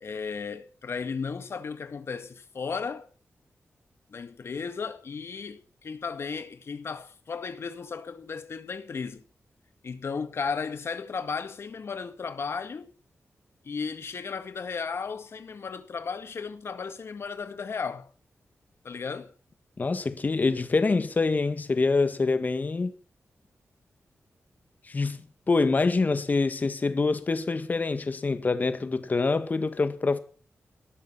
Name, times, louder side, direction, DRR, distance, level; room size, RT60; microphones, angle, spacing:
voice 1, 0.0-3.1 4.1-9.2 9.8-12.9 13.6-18.1 18.8-19.3, left 5 dB, 55° left, 1.9 m, -35 dB
voice 2, 19.8-22.9 24.9-25.2 25.5-30.2, left 3 dB, 35° left, 1.8 m, -25 dB
18.0 x 13.0 x 5.7 m
wide cardioid pair, 145°, 5 cm